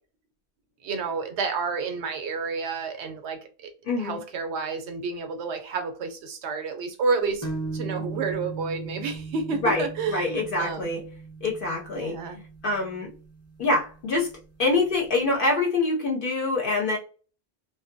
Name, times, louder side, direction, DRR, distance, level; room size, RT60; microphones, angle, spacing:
voice 1, 0.8-3.7 4.0-7.4 7.7-10.9 11.9-12.4, right 4 dB, 85° right, 0.9 m, -30 dB
voice 2, 3.8-4.2 9.6-11.0 11.4-12.2 12.6-13.1 13.6-14.3 14.6-17.0, left 2 dB, 60° left, 0.7 m, -25 dB
sound 1, 7.4-14.9, right 3 dB, 20° left, 0.6 m, -38 dB
2.6 x 2.1 x 2.5 m
omnidirectional pair, 1.1 m